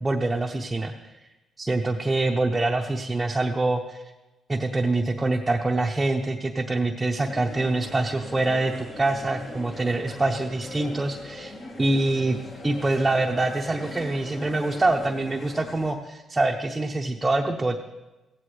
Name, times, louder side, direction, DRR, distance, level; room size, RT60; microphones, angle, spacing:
voice 1, 0.0-0.9 1.6-4.0 4.5-11.5 11.8-12.4 12.6-17.8, right 2 dB, 15° right, 1 dB, 0.8 m, -25 dB
sound 1, 7.2-15.9, left 2 dB, 45° left, 1.6 m, -40 dB
15.5 x 9.5 x 3.3 m, 1.1 s
cardioid pair, 90°, 0 cm